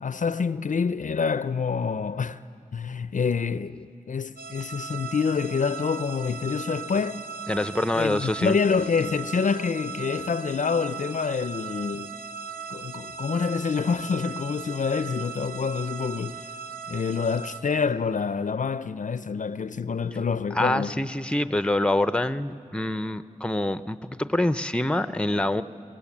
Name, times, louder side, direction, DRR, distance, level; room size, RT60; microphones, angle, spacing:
voice 1, 0.0-2.4 2.7-7.2 7.9-12.1 12.7-16.4 16.9-21.0, left 5 dB, 60° left, 0.5 m, -27 dB
sound 1, 4.4-17.6, right 6 dB, 80° right, 1.8 m, -38 dB
voice 2, 7.5-8.6 20.5-25.6, left 1 dB, 5° left, 0.6 m, -25 dB
24.0 x 19.0 x 7.3 m
cardioid pair, 45°, 15 cm